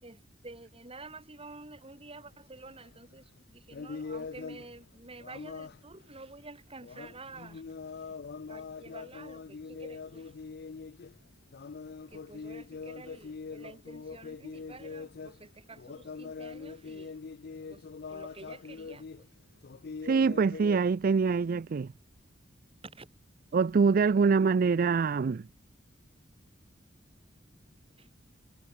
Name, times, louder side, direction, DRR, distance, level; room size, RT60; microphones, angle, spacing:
voice 1, 0.0-7.6 7.9-8.1 8.5-10.3 12.1-17.2 17.7-19.3 22.8-23.1 28.0-28.1, right 3 dB, 30° right, 4.3 m, -50 dB
sound 1, 2.2-2.3 2.6-3.1 3.7-4.8 5.2-5.9 6.8-11.2 11.5-15.5 15.7-19.3 19.6-20.8, left 5 dB, 55° left, 0.5 m, -43 dB
voice 2, 20.0-21.9 23.5-25.5, right 5 dB, 50° right, 0.4 m, -25 dB
head